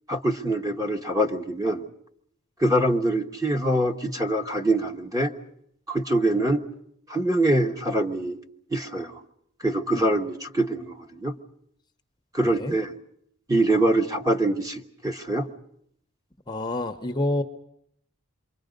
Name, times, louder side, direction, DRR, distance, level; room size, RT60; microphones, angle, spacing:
voice 1, 0.1-1.8 2.6-5.3 5.9-6.6 7.1-8.4 8.7-9.2 9.6-11.3 12.3-12.9 13.5-15.5, right 1 dB, 15° right, 4 dB, 1.3 m, -24 dB
voice 2, 12.4-12.8 16.5-17.4, left 1 dB, 20° left, 6 dB, 0.8 m, -28 dB
28.0 x 23.5 x 5.2 m, 0.71 s
head